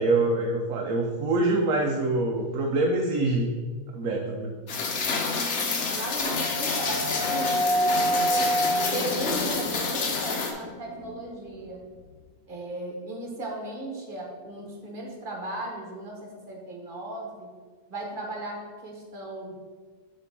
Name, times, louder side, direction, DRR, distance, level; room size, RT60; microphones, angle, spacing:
voice 1, 0.0-3.5 3.9-4.5, right 2 dB, 70° right, 1 dB, 1.1 m, -25 dB
Rain, 4.7-10.5, left 4 dB, 55° left, 1.1 m, -28 dB
voice 2, 4.8-5.1 5.9-11.8 12.5-17.5 17.9-19.5, right 1 dB, 35° right, -1 dB, 1.5 m, -36 dB
sound 1, 5.4-11.3, equal, 50° right, 1.3 m, -29 dB
6.7 x 3.3 x 6.0 m, 1.4 s
omnidirectional pair, 1.6 m